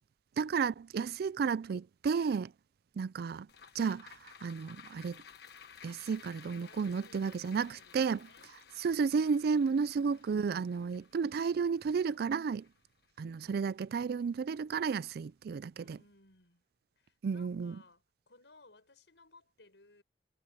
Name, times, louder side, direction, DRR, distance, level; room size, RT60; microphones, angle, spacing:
voice 1, 0.4-2.5 3.0-3.5 3.8-4.1 4.4-5.2 5.8-8.3 8.8-12.6 13.2-16.0 17.2-17.8, right 5 dB, 60° right, 0.3 m, -32 dB
sound 1, 3.5-14.0 14.4-14.5, left 7 dB, 65° left, 1.4 m, -56 dB
voice 2, 6.6-8.6 9.3-9.9 13.4-13.7 15.7-16.6 17.0-20.0, left 3 dB, 90° left, 5.9 m, -62 dB
head